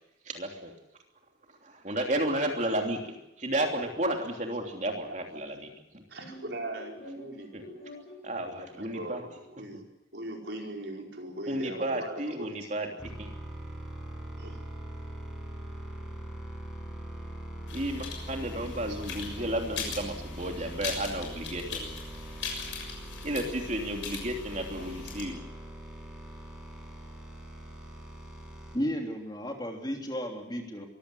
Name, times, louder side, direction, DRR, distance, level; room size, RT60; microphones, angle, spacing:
voice 1, 0.2-0.7 1.6-5.7 7.5-7.6 8.2-9.2 11.5-13.3 17.7-21.9 23.2-25.4, right 1 dB, 40° right, 2 dB, 3.2 m, -32 dB
voice 2, 4.6-5.0 6.1-8.0 8.8-9.8 10.1-12.7 14.4-14.6, right 1 dB, 65° right, 1 dB, 5.0 m, -40 dB
sound 1, 6.2-9.9, left 1 dB, 55° left, 5.8 m, -49 dB
sound 2, 13.0-28.8, right 1 dB, 5° right, 6.4 m, -42 dB
sound 3, 17.7-25.2, left 5 dB, 80° left, 6.7 m, -40 dB
voice 3, 28.7-30.9, equal, 20° left, 2 dB, 3.2 m, -33 dB
23.5 x 16.0 x 9.9 m, 0.89 s
head